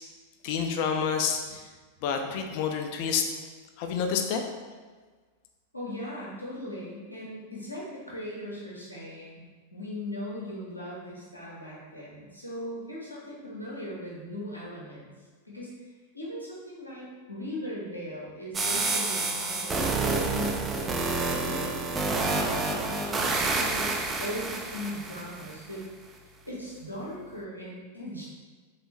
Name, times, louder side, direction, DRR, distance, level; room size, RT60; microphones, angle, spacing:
voice 1, 0.4-1.7 2.0-3.3 3.8-4.4, left 6 dB, 45° left, 4 dB, 0.4 m, -28 dB
voice 2, 5.7-9.4 9.7-15.1 15.4-15.7 16.1-20.9 21.4-21.8 22.3-25.9 26.5-28.3, left 1 dB, 85° left, -6 dB, 0.8 m, -39 dB
sound 1, 18.5-25.5, right 3 dB, 20° right, 0.4 m, -29 dB
3.4 x 3.2 x 3.1 m, 1.4 s
figure-of-eight pair, 90°, 0 cm